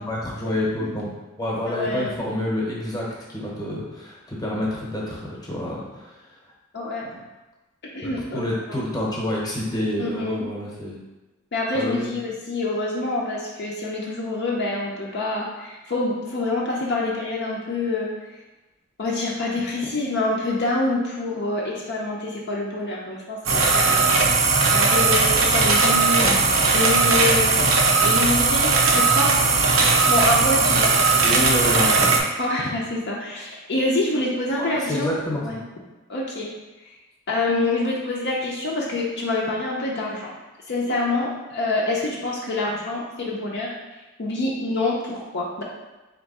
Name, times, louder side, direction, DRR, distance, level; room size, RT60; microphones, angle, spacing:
voice 1, 0.1-1.1 1.4-6.1 7.1-7.2 8.0-11.0 11.7-12.1 26.2-26.3 30.8-30.9 31.2-32.1 34.6-35.6, left 1 dB, 20° left, -4 dB, 0.9 m, -28 dB
voice 2, 1.7-2.2 6.7-7.1 7.9-8.8 10.0-10.5 11.5-18.1 19.0-24.4 24.7-26.3 26.7-27.7 28.0-29.8 30.1-31.2 32.4-35.6 36.1-36.5 36.8-36.9 37.3-40.3 40.7-43.8 44.2-45.6, left 2 dB, 60° left, -3 dB, 0.6 m, -26 dB
sound 1, 23.5-32.2, right 4 dB, 90° right, 0.6 m, -18 dB
3.5 x 2.9 x 4.1 m, 1.1 s
head